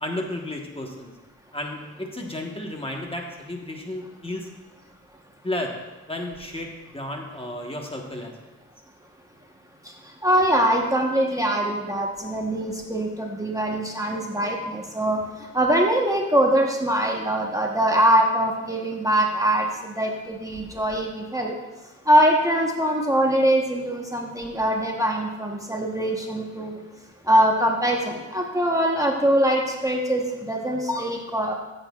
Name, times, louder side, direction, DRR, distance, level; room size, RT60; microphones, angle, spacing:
voice 1, 0.0-1.1 1.5-4.5 5.4-5.8 6.1-8.3, left 1 dB, 20° left, 1 dB, 1.1 m, -32 dB
voice 2, 10.2-15.2 15.5-21.6 22.1-26.8 27.3-31.5, right 1 dB, 10° right, 0 dB, 1.0 m, -22 dB
13.5 x 7.7 x 2.3 m, 1.1 s
cardioid pair, 90°, 31 cm